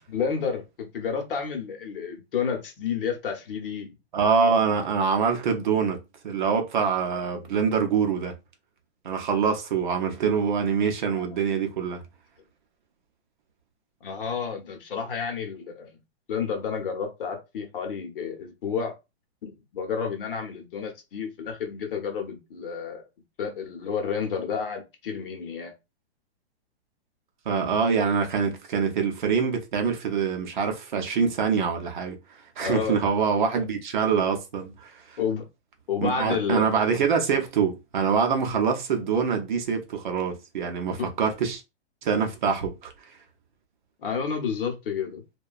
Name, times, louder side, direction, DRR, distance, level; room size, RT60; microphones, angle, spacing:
voice 1, 0.1-3.9 7.1-7.4 11.1-11.2 14.0-16.0 16.3-18.9 19.4-23.0 23.4-25.7 32.6-33.0 35.2-35.4 35.9-36.6 40.9-41.1 44.0-45.2, left 6 dB, 55° left, 0.9 m, -30 dB
voice 2, 4.1-6.0 6.2-8.3 9.0-12.0 27.5-32.2 32.6-35.2 36.0-41.6 42.0-42.9, right 6 dB, 45° right, 0.6 m, -25 dB
2.8 x 2.2 x 2.4 m
hypercardioid pair, 175°, 33 cm